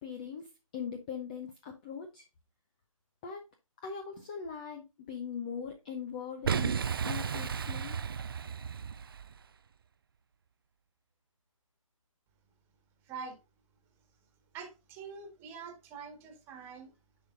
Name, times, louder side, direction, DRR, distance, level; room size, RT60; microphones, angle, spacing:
voice 1, 0.0-2.3 3.2-3.4 3.8-6.8 7.0-8.0, left 6 dB, 15° left, 0.5 m, -41 dB
Boom, 6.4-9.4, right 6 dB, 40° right, 0.4 m, -33 dB
voice 2, 13.0-13.4 14.5-16.9, right 5 dB, 10° right, 1.6 m, -45 dB
10.0 x 5.3 x 2.5 m
hypercardioid pair, 160°, 18 cm